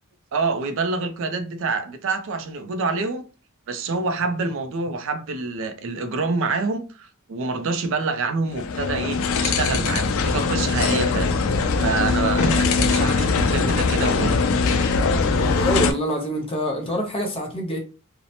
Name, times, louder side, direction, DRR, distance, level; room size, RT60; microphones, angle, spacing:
voice 1, 0.3-3.2 3.7-11.3 11.7-14.4, right 3 dB, 65° right, 0.4 m, -26 dB
sound 1, 8.5-15.9, left 4 dB, 65° left, 0.4 m, -21 dB
voice 2, 15.4-17.8, equal, 25° left, 0.6 m, -26 dB
2.7 x 2.1 x 2.7 m
head